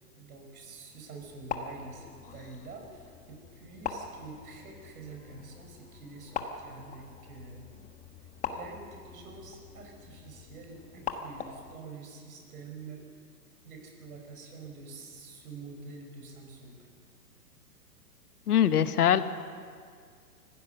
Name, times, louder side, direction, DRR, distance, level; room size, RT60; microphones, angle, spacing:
voice 1, 0.1-7.7 8.5-13.0 13.6-16.7, right 4 dB, 65° right, 2 dB, 5.4 m, -47 dB
sound 1, 1.2-11.8, left 6 dB, 15° left, 1.1 m, -42 dB
voice 2, 18.5-19.2, left 10 dB, 70° left, 12 dB, 1.3 m, -22 dB
25.0 x 15.5 x 6.8 m, 2.1 s
hypercardioid pair, 125°, 47 cm